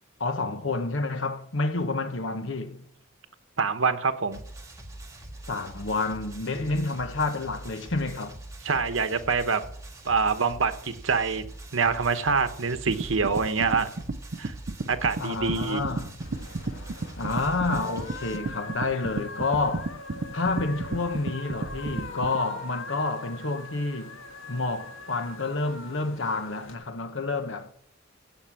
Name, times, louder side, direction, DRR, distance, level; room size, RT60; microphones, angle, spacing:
voice 1, 0.2-2.9 5.5-8.4 15.2-16.2 17.2-19.9 20.3-24.2 24.5-27.7, left 3 dB, 70° left, 1.1 m, -29 dB
voice 2, 3.6-4.4 8.6-9.6 10.0-11.4 11.7-13.9 14.4-14.5 14.9-15.8, right 5 dB, 90° right, 1.1 m, -25 dB
sound 1, 4.3-18.4, right 1 dB, 15° right, 1.8 m, -43 dB
sound 2, 12.9-22.4, right 2 dB, 50° right, 0.7 m, -33 dB
sound 3, 16.2-26.7, left 2 dB, 85° left, 1.7 m, -41 dB
16.0 x 5.4 x 7.5 m
head